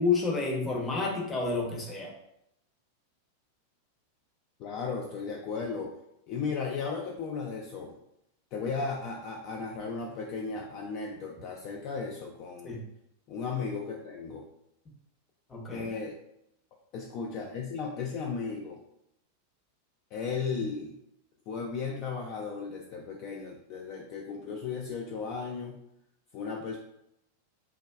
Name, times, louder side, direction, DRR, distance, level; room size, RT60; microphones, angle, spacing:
voice 1, 0.0-2.1 12.6-12.8 15.5-15.9, left 4 dB, 20° left, 0 dB, 0.7 m, -29 dB
voice 2, 4.6-5.9 6.3-8.0 8.5-12.8 13.3-14.4 15.7-16.2 16.9-18.8 20.1-21.0 21.5-25.8 26.3-26.8, left 5 dB, 40° left, 0 dB, 0.3 m, -35 dB
3.3 x 2.2 x 2.3 m, 0.79 s
figure-of-eight pair, 90°, 0 cm